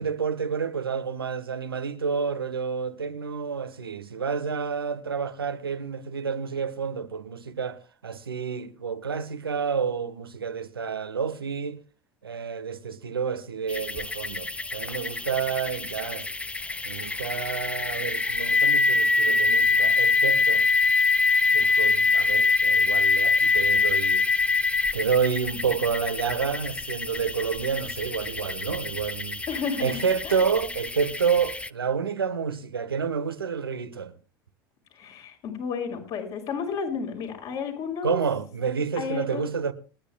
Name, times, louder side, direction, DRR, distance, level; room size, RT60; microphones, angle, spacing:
voice 1, 0.0-11.8 12.2-16.3 16.8-20.6 21.5-24.2 24.9-29.4 29.8-34.1 38.0-39.7, right 6 dB, 85° right, 1.2 m, -29 dB
sound 1, 13.7-31.7, left 4 dB, 10° left, 0.6 m, -25 dB
voice 2, 29.5-30.4 34.9-38.2 39.0-39.4, left 6 dB, 55° left, 5.6 m, -32 dB
30.0 x 10.0 x 2.3 m
hypercardioid pair, 75°, 12 cm